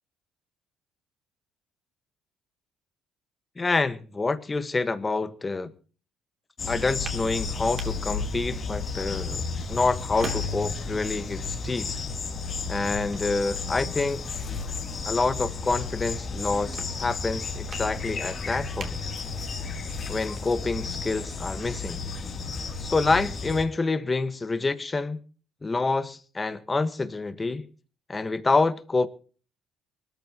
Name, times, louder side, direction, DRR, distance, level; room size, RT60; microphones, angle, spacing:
voice 1, 3.6-5.7 6.7-9.4 9.7-11.9 12.7-14.3 15.0-19.0 20.1-22.0 22.8-25.2 25.6-27.7 28.1-29.1, left 3 dB, 15° left, 1.4 m, -27 dB
sound 1, 6.6-23.7, left 4 dB, 30° left, 2.9 m, -33 dB
sound 2, 16.6-19.8, right 4 dB, 40° right, 2.9 m, -46 dB
24.0 x 14.0 x 3.0 m
cardioid pair, 145°, 0 cm